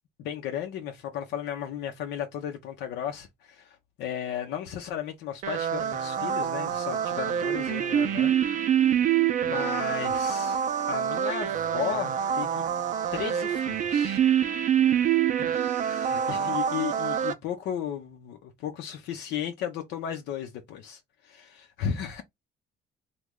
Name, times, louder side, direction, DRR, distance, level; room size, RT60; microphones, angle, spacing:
voice 1, 0.2-8.3 8.8-9.0 9.4-10.6 10.9-12.6 13.1-14.2 15.4-22.2, left 9 dB, 85° left, 0.6 m, -35 dB
sound 1, 5.4-17.3, right 9 dB, 45° right, 0.5 m, -26 dB
3.1 x 2.2 x 3.6 m
cardioid pair, 150°, 17 cm